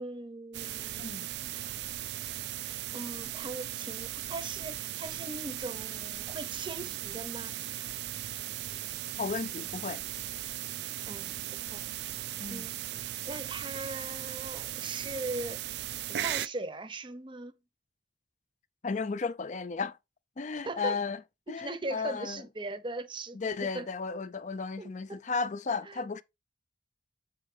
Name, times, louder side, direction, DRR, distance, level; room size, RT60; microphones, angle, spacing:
voice 1, 0.0-1.5 2.9-7.6 11.1-11.8 12.5-15.6 16.1-17.5 20.6-21.0 21.5-23.9 24.8-24.9 25.8-26.0, right 2 dB, 25° right, 0.7 m, -40 dB
sound 1, 0.5-16.5, right 13 dB, 60° right, 0.3 m, -38 dB
voice 2, 1.0-1.3 9.2-10.0 12.4-12.7 18.8-20.0 20.4-21.2 21.5-22.4 23.3-26.2, left 4 dB, 40° left, 0.5 m, -34 dB
7.3 x 4.4 x 3.3 m
head